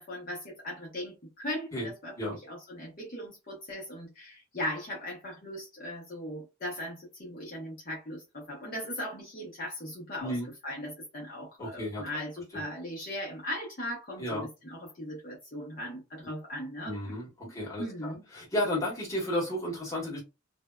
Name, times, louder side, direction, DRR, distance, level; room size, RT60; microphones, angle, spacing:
voice 1, 0.0-10.4 10.6-17.0 17.4-17.5 17.8-18.2, left 1 dB, 45° left, 0.8 m, -38 dB
voice 2, 11.6-12.1 12.5-12.6 14.2-14.5 16.8-20.2, left 1 dB, 15° left, 1.2 m, -33 dB
2.6 x 2.1 x 2.2 m
head